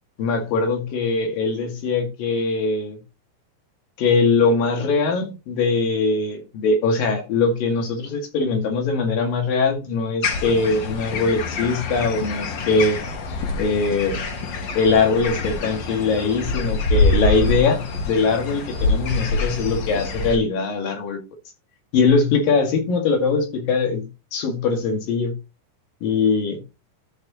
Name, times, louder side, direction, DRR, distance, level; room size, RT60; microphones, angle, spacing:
voice 1, 0.2-3.0 4.0-13.0 13.6-14.2 14.8-21.2 21.9-25.3 26.0-26.6, left 4 dB, 80° left, 3.9 m, -21 dB
sound 1, 10.2-20.4, left 3 dB, 60° left, 1.2 m, -25 dB
13.0 x 6.3 x 3.0 m
omnidirectional pair, 4.0 m